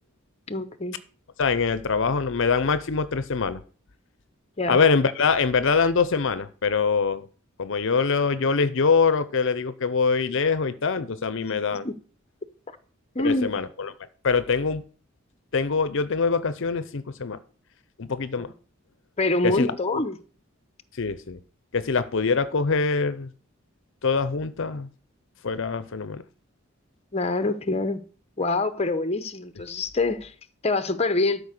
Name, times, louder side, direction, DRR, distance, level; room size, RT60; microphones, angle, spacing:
voice 1, 0.5-1.0 4.6-4.8 11.8-11.9 13.1-13.5 18.4-18.5 19.2-20.2 27.1-28.0 28.4-30.3 30.6-31.4, left 2 dB, 30° left, 0.8 m, -25 dB
voice 2, 1.4-3.6 4.7-7.3 7.6-11.9 13.2-13.9 14.2-14.8 15.5-17.4 18.0-18.5 19.4-20.0 21.0-21.4 21.7-23.3 24.0-24.9 25.4-26.2, left 5 dB, 65° left, 0.7 m, -24 dB
12.5 x 5.2 x 6.6 m
head